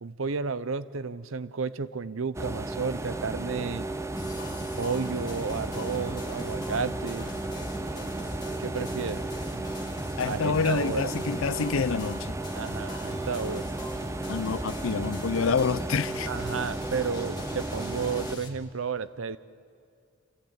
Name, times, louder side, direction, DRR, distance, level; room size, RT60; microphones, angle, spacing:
voice 1, 0.0-3.9 4.8-7.3 8.6-9.2 10.2-11.1 12.5-13.7 16.3-19.4, right 5 dB, 70° right, 15 dB, 0.7 m, -32 dB
sound 1, 2.3-18.4, right 2 dB, 15° right, 0.6 m, -34 dB
sound 2, 2.9-13.8 14.4-14.6, equal, 45° right, 3.0 m, -52 dB
sound 3, 4.2-18.5, left 1 dB, 20° left, 2.0 m, -41 dB
voice 2, 10.2-12.4 14.3-16.3, left 5 dB, 70° left, 17 dB, 0.5 m, -27 dB
27.5 x 14.5 x 8.8 m, 2.3 s
head